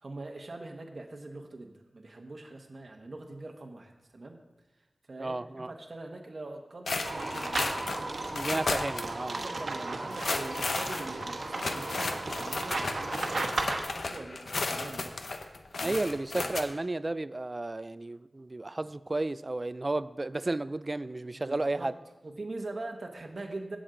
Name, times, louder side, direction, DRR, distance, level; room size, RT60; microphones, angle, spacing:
voice 1, 0.0-4.4 5.1-8.1 8.5-8.6 9.3-15.2 15.7-16.0 16.4-16.5 21.3-21.9 22.2-23.8, right 2 dB, 55° right, 2 dB, 1.0 m, -43 dB
voice 2, 5.2-5.7 8.2-9.5 9.8-10.0 15.8-21.9, right 2 dB, 35° right, 15 dB, 0.3 m, -33 dB
sound 1, 6.9-9.1 9.4-9.5 10.0-16.6, left 3 dB, 80° left, 0.8 m, -34 dB
sound 2, 7.0-13.8, right 2 dB, 80° right, 1.1 m, -35 dB
16.0 x 6.2 x 3.8 m, 1.1 s
wide cardioid pair, 95°, 0 cm